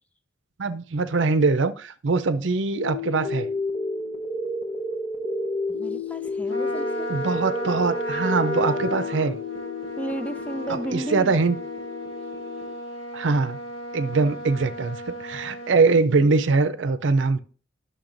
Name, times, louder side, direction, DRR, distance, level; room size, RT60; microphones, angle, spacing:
voice 1, 0.6-3.5 7.1-9.4 10.7-11.6 13.1-13.6 13.9-17.4, right 4 dB, 70° right, 0.5 m, -22 dB
sound 1, 2.7-12.7, left 2 dB, 40° left, 0.9 m, -31 dB
voice 2, 5.7-7.1 10.0-11.3, right 1 dB, 5° left, 0.4 m, -33 dB
Trumpet, 6.5-15.8, equal, 60° left, 1.9 m, -35 dB
10.5 x 6.5 x 2.6 m
head